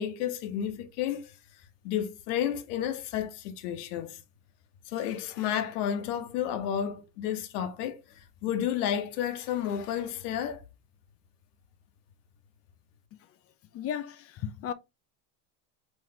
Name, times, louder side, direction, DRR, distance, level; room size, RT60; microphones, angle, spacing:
voice 1, 0.0-1.3 1.8-4.2 4.9-10.6, left 9 dB, 80° left, 0.9 m, -31 dB
voice 2, 13.7-14.7, left 9 dB, 35° left, 0.4 m, -35 dB
3.7 x 3.1 x 2.7 m
supercardioid pair, 105°, 46 cm